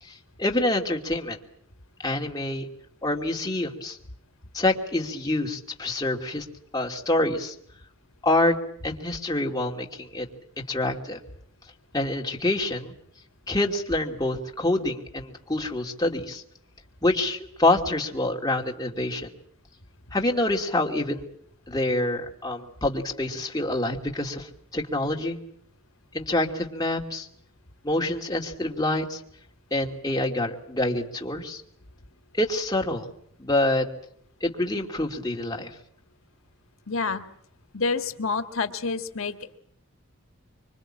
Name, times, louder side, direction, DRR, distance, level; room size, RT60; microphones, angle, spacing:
voice 1, 0.0-1.4 2.0-2.7 3.0-4.0 4.5-6.5 6.7-7.5 8.2-8.6 8.8-10.3 10.7-11.2 11.9-13.0 13.5-16.4 17.0-19.3 20.1-21.3 21.7-25.4 26.1-27.3 27.8-29.2 29.7-31.6 32.4-33.1 33.4-33.9 34.4-35.7, left 2 dB, 20° left, 1 dB, 2.6 m, -26 dB
voice 2, 36.9-37.2 37.7-39.4, left 4 dB, 75° left, 9 dB, 1.6 m, -28 dB
26.0 x 24.5 x 8.8 m, 0.68 s
head